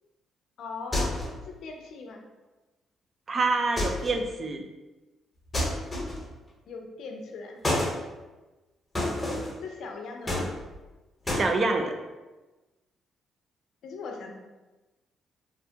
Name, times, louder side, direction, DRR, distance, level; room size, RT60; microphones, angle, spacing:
voice 1, 0.6-1.2 1.6-2.2 6.7-7.6 9.6-10.5 13.8-14.3, left 4 dB, 75° left, 2 dB, 0.4 m, -39 dB
banging window wooden frame, 0.9-1.4 3.8-4.2 5.5-6.3 7.6-8.0 8.9-9.6 10.3-10.9 11.3-11.5, left 1 dB, 20° left, 0.9 m, -29 dB
voice 2, 3.3-4.6 11.3-11.9, right 3 dB, 40° right, 4 dB, 0.3 m, -26 dB
2.5 x 2.1 x 2.7 m, 1.1 s
cardioid pair, 90°, 0 cm